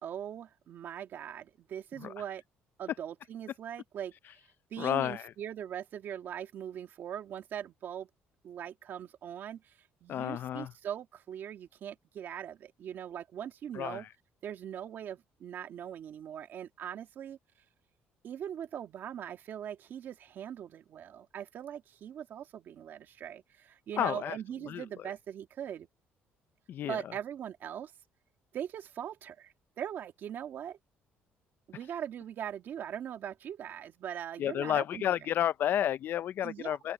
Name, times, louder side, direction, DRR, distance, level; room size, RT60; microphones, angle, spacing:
voice 1, 0.0-2.4 2.8-4.1 4.7-8.1 8.4-14.1 14.4-17.4 18.2-25.9 26.9-27.9 28.5-30.8 31.7-35.2 36.4-36.8, right 9 dB, 50° right, 1.8 m, -41 dB
voice 2, 4.8-5.3 10.1-10.7 13.7-14.0 24.0-24.4 24.7-24.8 26.7-27.0 34.4-36.9, left 11 dB, 50° left, 0.5 m, -31 dB
open air
cardioid pair, 145°, 4 cm